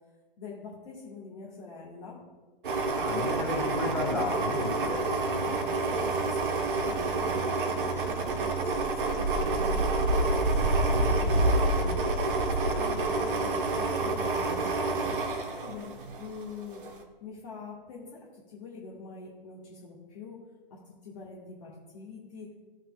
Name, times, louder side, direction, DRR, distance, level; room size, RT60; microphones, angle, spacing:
voice 1, 0.4-2.2 5.0-11.9 12.7-14.7 15.1-16.8 17.2-20.4 20.7-22.5, left 4 dB, 35° left, -5 dB, 1.7 m, -45 dB
sound 1, 2.6-16.4 16.8-16.9, right 2 dB, 60° right, 1.3 m, -28 dB
voice 2, 2.9-5.0 11.6-11.9, left 3 dB, 5° left, -6 dB, 2.4 m, -33 dB
15.5 x 6.5 x 2.4 m, 1.3 s
figure-of-eight pair, 125°, 29 cm